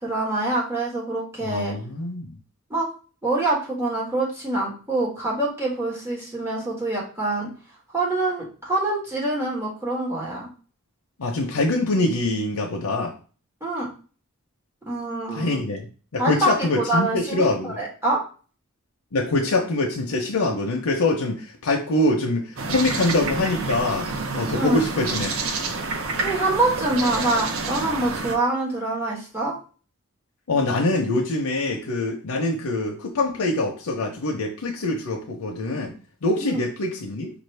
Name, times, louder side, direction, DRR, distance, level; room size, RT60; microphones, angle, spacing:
voice 1, 0.0-1.8 2.7-2.9 3.2-7.5 7.9-10.5 13.6-13.9 14.9-15.6 16.2-18.2 24.6-24.8 26.2-29.5 36.4-36.6, right 2 dB, 10° right, -5 dB, 1.5 m, -25 dB
voice 2, 1.4-2.4 11.2-13.1 15.3-15.8 16.1-17.8 19.1-24.1 24.3-25.3 30.5-35.9 36.2-37.3, left 2 dB, 90° left, 1 dB, 0.7 m, -24 dB
sound 1, 22.6-28.4, right 3 dB, 65° right, 0.6 m, -28 dB
4.8 x 2.6 x 3.3 m, 0.38 s
head